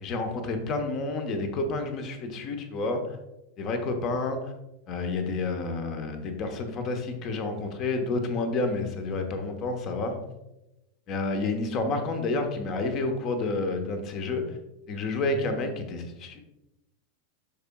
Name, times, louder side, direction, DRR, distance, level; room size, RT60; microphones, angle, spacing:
voice 1, 0.0-3.0 3.6-4.5 4.9-10.2 11.1-14.4 14.9-16.4, left 3 dB, 35° left, 6 dB, 1.1 m, -29 dB
12.0 x 4.5 x 2.3 m, 0.92 s
figure-of-eight pair, 90°, 0 cm